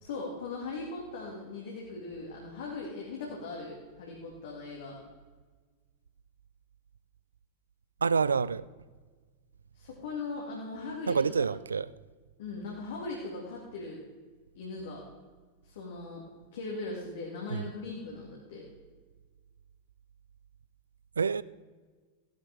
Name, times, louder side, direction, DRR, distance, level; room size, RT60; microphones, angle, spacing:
voice 1, 0.0-5.0 9.7-11.5 12.4-14.0 14.6-15.0 15.6-16.2 16.5-18.6, left 3 dB, 60° left, 2.2 m, -39 dB
voice 2, 8.0-8.6 11.1-11.9 17.5-17.7 21.2-21.4, right 5 dB, 75° right, 0.3 m, -27 dB
15.0 x 11.0 x 3.5 m
figure-of-eight pair, 90°, 0 cm